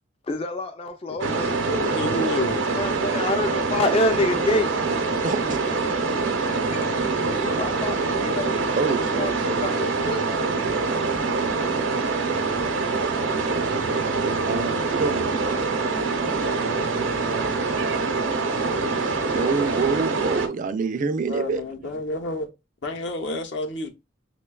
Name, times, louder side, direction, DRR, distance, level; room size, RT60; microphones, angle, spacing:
voice 1, 0.2-1.6 1.9-4.7 6.7-6.9 7.4-10.3 16.5-17.2 18.4-20.0, left 2 dB, 30° left, 0.3 m, -29 dB
sound 1, 1.2-20.5, right 4 dB, 85° right, 0.7 m, -25 dB
voice 2, 1.7-2.6 21.3-22.5 22.8-23.9, left 2 dB, 65° left, 0.7 m, -29 dB
voice 3, 5.2-5.6 8.7-9.3 14.0-15.3 19.3-21.9, right 4 dB, 45° right, 0.3 m, -27 dB
6.0 x 2.2 x 2.2 m
head